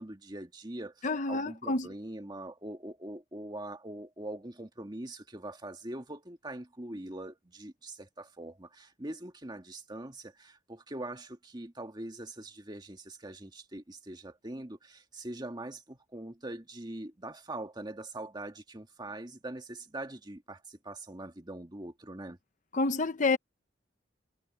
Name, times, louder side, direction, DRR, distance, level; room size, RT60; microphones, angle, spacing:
voice 1, 0.0-22.4, right 1 dB, 20° right, 1.7 m, -43 dB
voice 2, 1.0-1.9 22.7-23.4, left 3 dB, 40° left, 0.8 m, -28 dB
head